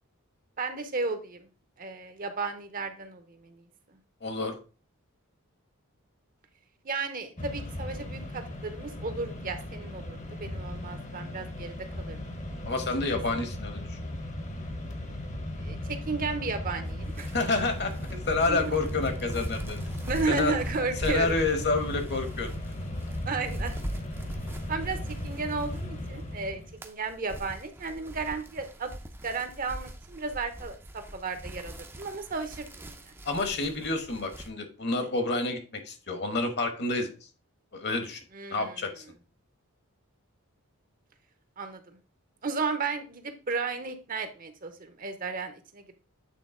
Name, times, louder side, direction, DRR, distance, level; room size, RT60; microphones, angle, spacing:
voice 1, 0.6-1.5 1.8-3.6 6.8-12.4 15.6-17.3 18.5-18.7 20.0-21.4 23.2-23.9 24.7-28.9 29.2-33.1 38.3-38.8 41.6-41.8 42.4-45.9, right 4 dB, 40° right, 8 dB, 0.7 m, -34 dB
voice 2, 4.2-4.6 12.6-14.0 17.3-17.9 18.3-19.8 20.3-20.5 21.0-22.7 33.2-37.1 37.7-38.2 38.5-39.0, left 3 dB, 50° left, 7 dB, 1.1 m, -29 dB
Mechanisms, 7.4-26.8, left 1 dB, 30° left, 0.9 m, -37 dB
sound 1, 16.8-26.2 26.6-34.5, right 1 dB, 10° right, 0.5 m, -42 dB
8.4 x 3.8 x 3.7 m, 0.35 s
head